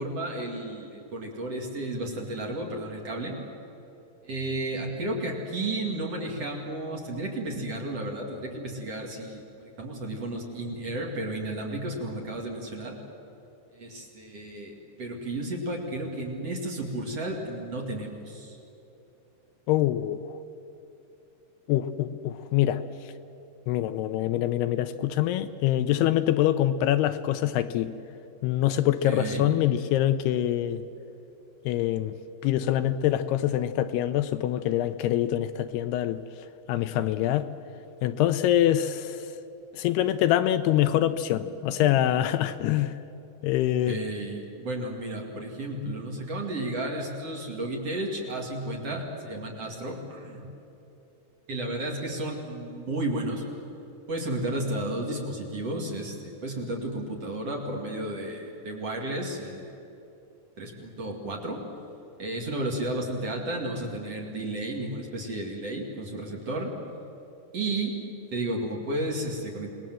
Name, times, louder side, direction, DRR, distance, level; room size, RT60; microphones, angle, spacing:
voice 1, 0.0-3.4 4.2-13.0 13.7-18.6 29.0-29.5 36.9-37.2 43.9-50.5 51.5-53.4 54.1-59.8 60.6-61.6 62.2-66.7 67.5-67.9 68.3-69.7, right 1 dB, 40° right, 0 dB, 3.1 m, -33 dB
voice 2, 19.7-20.4 21.7-22.8 23.7-27.9 28.4-30.8 31.7-32.2 32.4-36.2 36.7-37.5 38.0-39.3 39.7-42.9 43.4-44.0, left 12 dB, 80° left, 10 dB, 2.6 m, -25 dB
28.0 x 20.5 x 7.7 m, 2.9 s
omnidirectional pair, 4.8 m